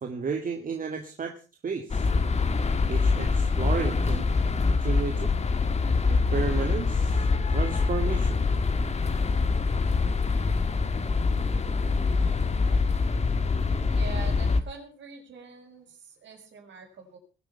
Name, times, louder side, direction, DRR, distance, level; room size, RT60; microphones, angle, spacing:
voice 1, 0.0-1.4 1.6-2.1 2.9-4.3 4.8-5.3 6.1-8.4, right 5 dB, 45° right, 4 dB, 2.1 m, -33 dB
sound 1, 1.9-14.6, left 4 dB, 35° left, 1.9 m, -25 dB
voice 2, 13.9-17.2, right 6 dB, 65° right, 2 dB, 6.1 m, -44 dB
20.5 x 8.3 x 5.8 m, 0.35 s
cardioid pair, 90°, 20 cm